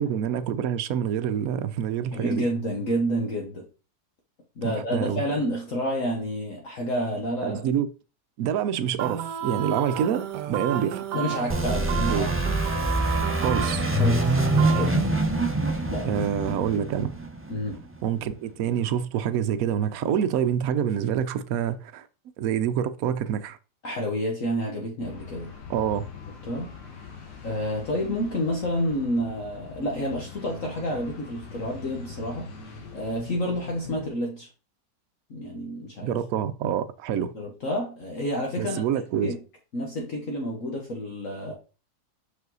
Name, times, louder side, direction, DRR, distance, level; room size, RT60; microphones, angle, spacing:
voice 1, 0.0-2.5 4.6-5.2 7.4-7.9 8.4-11.0 12.0-12.2 13.3-13.8 16.0-17.1 18.0-22.1 22.4-23.6 25.7-26.1 36.0-37.3 38.6-39.3, right 9 dB, 65° right, 1.0 m, -27 dB
voice 2, 2.1-3.7 4.6-7.6 11.1-12.3 13.4-13.6 14.0-15.0 15.9-16.2 17.5-17.8 23.8-25.5 26.5-26.7 27.4-32.5 32.9-34.5 35.3-36.2 37.3-38.8 39.2-39.4 39.7-41.5, equal, 55° left, 1.6 m, -29 dB
sound 1, 9.0-15.1, right 10 dB, 90° right, 1.3 m, -32 dB
sound 2, 11.5-18.1, right 1 dB, 10° right, 0.6 m, -25 dB
sound 3, 25.0-34.1, left 6 dB, 90° left, 1.8 m, -43 dB
5.8 x 5.3 x 3.9 m
omnidirectional pair, 1.7 m